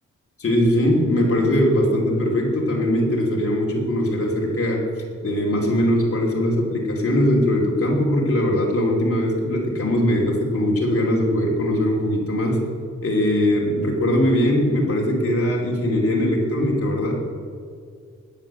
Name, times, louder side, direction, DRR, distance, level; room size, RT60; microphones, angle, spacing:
voice 1, 0.4-4.8 5.2-12.6 13.0-17.1, left 1 dB, 50° left, -2 dB, 3.2 m, -21 dB
19.5 x 7.3 x 7.8 m, 2.1 s
wide cardioid pair, 160°, 30 cm